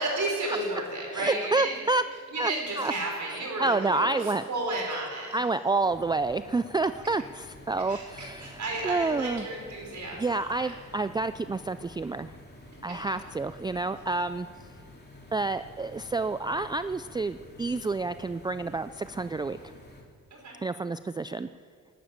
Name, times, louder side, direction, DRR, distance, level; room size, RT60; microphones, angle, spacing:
voice 1, 0.0-1.7 2.3-5.4 7.9-10.7 20.3-20.6, right 2 dB, 65° right, -1 dB, 5.0 m, -33 dB
voice 2, 1.1-2.0 2.4-2.5 2.8-2.9 3.6-4.4 5.3-8.6 8.8-9.4 10.2-12.3 12.8-14.5 15.3-19.6 20.6-21.5, right 3 dB, 15° right, 12 dB, 0.3 m, -29 dB
sound 1, 5.8-20.0, left 2 dB, 30° left, 3.0 m, -50 dB
11.5 x 11.5 x 8.9 m, 2.1 s
cardioid pair, 80°, 32 cm